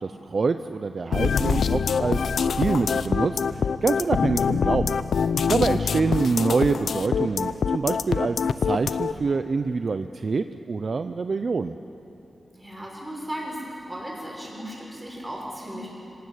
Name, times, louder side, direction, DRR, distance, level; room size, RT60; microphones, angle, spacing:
voice 1, 0.0-5.0 5.5-11.8, right 4 dB, 45° right, 9 dB, 0.5 m, -26 dB
sound 1, 1.1-9.1, left 6 dB, 80° left, 0.6 m, -24 dB
voice 2, 5.8-6.2 12.5-15.9, equal, 10° right, -3 dB, 6.0 m, -36 dB
25.5 x 18.0 x 8.5 m, 2.9 s
wide cardioid pair, 120°, 0 cm